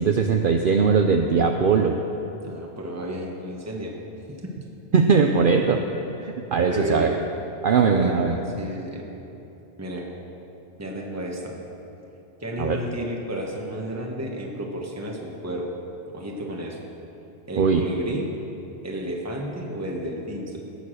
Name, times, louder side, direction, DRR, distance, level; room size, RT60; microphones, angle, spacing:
voice 1, 0.0-2.0 4.9-5.8 6.2-7.1 7.6-8.4 12.6-12.8 17.6-17.8, right 5 dB, 55° right, 4 dB, 0.7 m, -20 dB
voice 2, 2.4-4.0 4.4-4.5 6.7-7.2 7.7-9.0 9.8-10.1 10.8-11.6 12.4-15.7 16.1-16.8 17.5-18.3 18.8-20.6, equal, 15° right, -1 dB, 1.3 m, -32 dB
18.0 x 7.1 x 6.4 m, 3.0 s
omnidirectional pair, 1.2 m